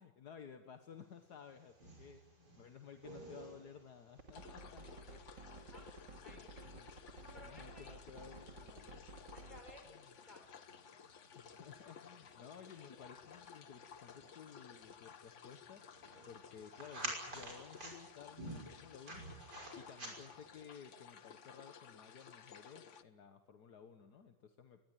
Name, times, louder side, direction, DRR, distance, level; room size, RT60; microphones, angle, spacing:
voice 1, 0.0-4.9 6.3-6.9 7.3-9.0 11.3-19.2 19.8-24.8, left 7 dB, 65° left, 7 dB, 1.8 m, -56 dB
sound 1, 1.2-20.6, right 1 dB, 65° right, 6.5 m, -53 dB
sound 2, 4.2-9.8, right 2 dB, 80° right, 3.1 m, -53 dB
sound 3, 4.3-23.0, left 7 dB, 50° left, 1.2 m, -57 dB
voice 2, 4.8-5.2 5.7-6.5 7.2-7.9 9.3-10.7 19.9-20.3, left 1 dB, 25° left, 4 dB, 6.1 m, -60 dB
23.5 x 19.5 x 9.2 m, 1.0 s
omnidirectional pair, 1.9 m